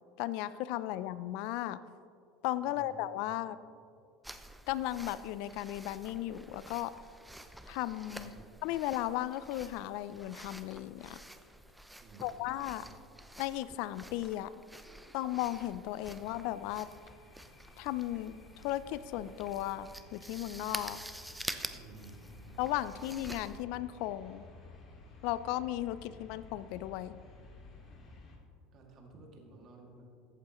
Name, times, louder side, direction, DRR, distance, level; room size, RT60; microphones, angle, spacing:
voice 1, 0.2-1.8 2.4-3.6 4.7-6.9 7.7-8.3 8.6-11.2 12.2-12.8 13.4-14.5 15.1-16.9 17.8-18.4 18.6-21.0 22.6-24.4 25.2-27.2, left 14 dB, 65° left, 16 dB, 0.4 m, -35 dB
voice 2, 2.6-2.9 3.2-3.4 8.1-8.5 12.0-13.1 16.1-16.2 21.7-22.6 23.0-23.1 26.0-26.1 28.7-30.1, right 3 dB, 45° right, 0 dB, 2.2 m, -55 dB
sound 1, 4.2-23.6, right 1 dB, 5° right, 0.6 m, -48 dB
sound 2, 16.2-28.4, left 3 dB, 45° left, 2.1 m, -54 dB
14.5 x 8.4 x 3.0 m, 2.4 s
hypercardioid pair, 95°, 0 cm